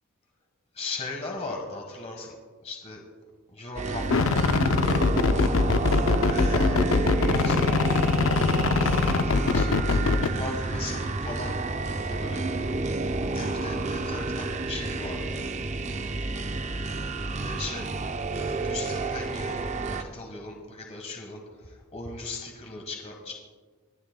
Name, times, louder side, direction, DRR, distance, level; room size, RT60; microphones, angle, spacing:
voice 1, 0.7-2.3 2.6-3.0 3.5-4.5 6.2-6.8 7.4-7.8 8.7-9.7 10.2-11.6 12.1-12.4 13.1-15.4 17.3-17.9 18.2-19.6 19.9-23.3, left 2 dB, 30° left, 1 dB, 1.4 m, -38 dB
sound 1, 3.8-20.0, right 3 dB, 35° right, 0.5 m, -30 dB
sound 2, 4.1-10.3, left 4 dB, 70° left, 0.5 m, -23 dB
26.0 x 10.5 x 2.2 m, 1.4 s
head